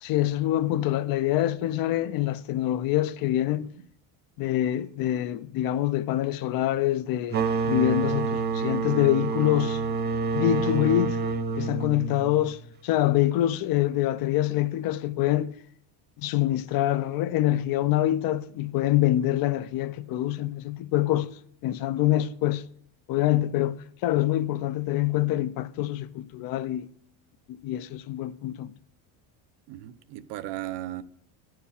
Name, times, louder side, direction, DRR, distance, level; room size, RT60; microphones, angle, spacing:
voice 1, 0.0-3.7 4.4-9.8 10.3-11.2 11.6-15.5 16.2-21.3 21.6-22.6 23.1-26.9 27.5-28.7, left 13 dB, 55° left, 0.5 m, -25 dB
sound 1, 7.3-12.7, right 4 dB, 25° right, 0.4 m, -28 dB
voice 2, 29.7-31.0, right 14 dB, 70° right, 0.7 m, -36 dB
10.5 x 4.7 x 7.0 m
cardioid pair, 140°, 43 cm